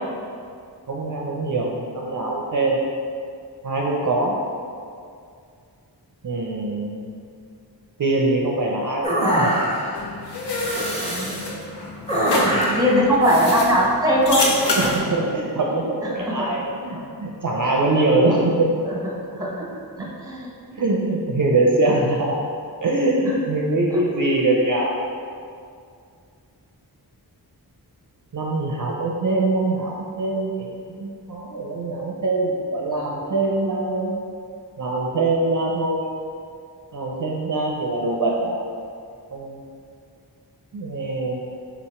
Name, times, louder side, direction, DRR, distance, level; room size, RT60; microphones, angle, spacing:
voice 1, 0.9-2.8 3.6-4.4 6.2-7.0 8.0-9.6 12.1-12.8 14.8-18.7 20.0-20.1 20.7-22.3 22.8-25.0 28.3-34.1 34.8-36.1 36.9-38.6 39.3-39.6 40.7-41.4, right 2 dB, 50° right, -2 dB, 0.5 m, -23 dB
sound 1, 9.0-10.0 10.6-11.5 12.1-12.9, right 1 dB, 15° left, 1.1 m, -24 dB
sound 2, 9.9-15.0, left 2 dB, 75° left, 0.7 m, -27 dB
voice 2, 11.0-11.4 12.8-14.4 14.7-14.8 16.1-16.4 18.8-19.0 19.3-19.5 20.2-20.5, equal, 10° right, -3 dB, 1.0 m, -20 dB
4.1 x 2.9 x 4.2 m, 2.3 s
wide cardioid pair, 50°, 41 cm